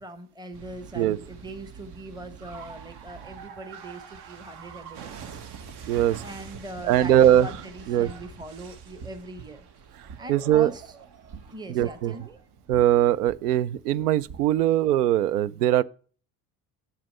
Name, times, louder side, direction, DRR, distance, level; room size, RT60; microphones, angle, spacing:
voice 1, 0.0-5.4 6.2-9.6 10.2-10.9 11.5-12.4, right 1 dB, 10° right, 1.1 m, -41 dB
sound 1, 0.5-14.7, right 6 dB, 55° right, 1.5 m, -44 dB
voice 2, 5.9-6.2 6.9-7.5 7.9-8.1 10.3-10.7 11.7-12.1 12.7-15.8, right 12 dB, 80° right, 0.6 m, -21 dB
9.3 x 7.4 x 5.4 m
hypercardioid pair, 65°, 45 cm